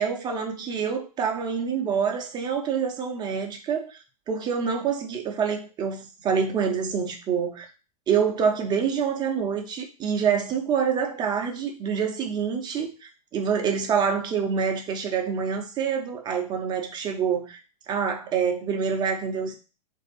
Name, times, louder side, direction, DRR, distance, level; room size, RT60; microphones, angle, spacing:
voice 1, 0.0-4.0 4.3-7.7 8.1-17.6 17.9-19.5, right 6 dB, 20° right, 3 dB, 0.7 m, -26 dB
3.2 x 2.7 x 4.1 m, 0.32 s
figure-of-eight pair, 100°, 20 cm